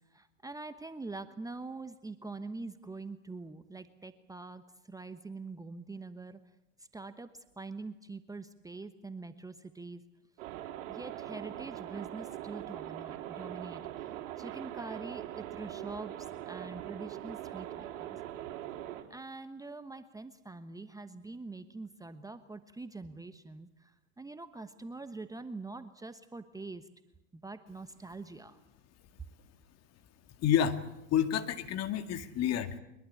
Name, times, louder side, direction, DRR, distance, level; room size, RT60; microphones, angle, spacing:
voice 1, 0.1-6.4 6.8-10.0 10.9-18.2 19.1-26.9 27.3-28.6, right 3 dB, 10° right, 10 dB, 1.1 m, -44 dB
sound 1, 10.4-19.0, right 12 dB, 60° right, 3.8 m, -42 dB
voice 2, 30.4-30.8 31.1-32.8, left 9 dB, 40° left, 9 dB, 2.2 m, -29 dB
23.0 x 21.5 x 8.6 m, 0.87 s
hypercardioid pair, 100°, 39 cm